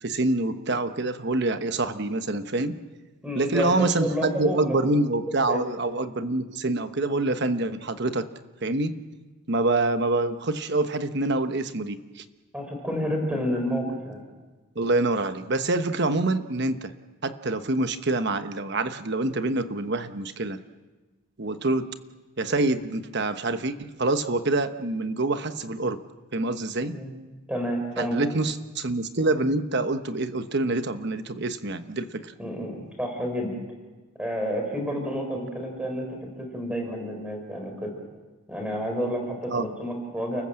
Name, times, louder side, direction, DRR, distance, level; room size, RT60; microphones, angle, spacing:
voice 1, 0.0-2.7 3.3-8.2 8.6-8.9 9.5-12.2 14.7-16.9 17.2-20.6 21.4-21.9 22.4-26.0 26.3-26.9 28.0-32.3 39.5-39.7, right 2 dB, 50° right, 9 dB, 1.1 m, -26 dB
voice 2, 3.2-4.8 5.5-5.6 12.5-14.2 26.8-27.1 27.5-28.2 32.4-33.6 34.2-37.9 38.5-40.4, equal, 5° right, 2 dB, 4.7 m, -30 dB
30.0 x 14.5 x 7.7 m, 1.2 s
head